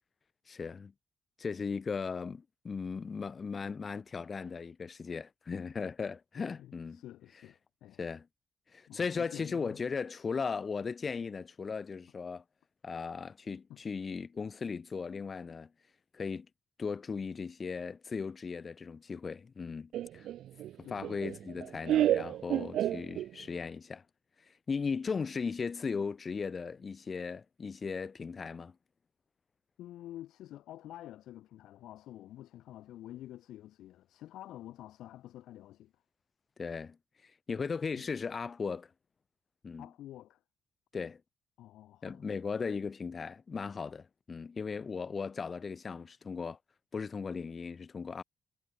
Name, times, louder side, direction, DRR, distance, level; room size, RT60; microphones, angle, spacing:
voice 1, 0.5-0.9 1.4-7.0 8.0-8.3 8.7-12.4 12.8-15.7 16.1-16.5 16.8-20.3 20.9-24.0 24.5-28.8 36.6-37.0 37.2-38.9 39.6-39.9 40.9-41.2 42.0-46.6 46.9-48.2, left 5 dB, 40° left, 0.3 m, -37 dB
voice 2, 6.4-8.0 8.9-9.8 13.7-13.8 20.8-21.0 29.8-36.0 37.9-38.0 39.8-40.4 41.6-42.2, left 13 dB, 85° left, 0.8 m, -49 dB
Laughter, 19.9-23.6, right 12 dB, 75° right, 0.3 m, -31 dB
cardioid pair, 90°, 0 cm